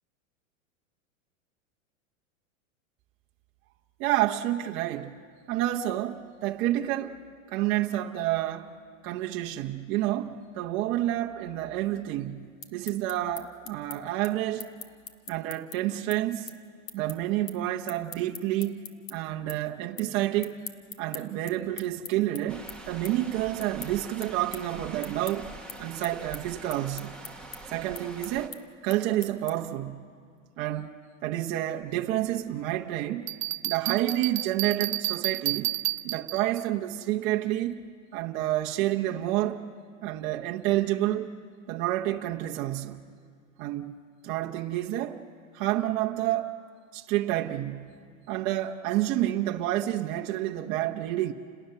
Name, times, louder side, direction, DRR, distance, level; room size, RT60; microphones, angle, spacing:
voice 1, 4.0-5.2 5.5-7.2 7.5-8.7 9.0-14.8 15.3-16.5 16.9-18.8 19.1-20.6 21.0-25.5 25.8-27.2 27.7-30.1 30.6-30.9 31.2-33.2 33.6-35.7 36.0-37.8 38.1-39.6 40.0-41.3 41.7-43.0 43.6-43.9 44.2-45.2 45.5-46.5 46.9-48.0 48.3-51.3, right 14 dB, 30° right, 0.8 m, -29 dB
sound 1, 12.4-19.1 19.5-20.1 20.4-29.8, left 7 dB, 75° left, 2.0 m, -43 dB
sound 2, 22.5-28.5, right 2 dB, ahead, 1.1 m, -44 dB
Bell, 33.3-36.6, right 19 dB, 75° right, 0.7 m, -31 dB
29.0 x 19.0 x 6.7 m
supercardioid pair, 150°, 40 cm